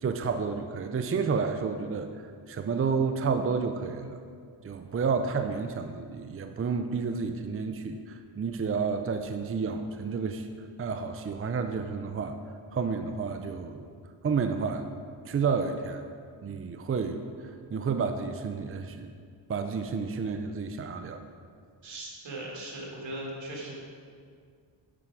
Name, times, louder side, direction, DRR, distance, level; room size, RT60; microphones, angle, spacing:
voice 1, 0.0-2.1 2.5-4.2 4.6-10.5 10.8-12.4 12.7-13.9 14.2-14.9 15.3-16.0 16.4-19.1 19.5-21.3, right 5 dB, 30° right, 7 dB, 0.5 m, -30 dB
voice 2, 21.8-23.7, right 1 dB, 80° right, -3 dB, 2.5 m, -38 dB
11.0 x 6.0 x 4.9 m, 2.1 s
cardioid pair, 90°, 44 cm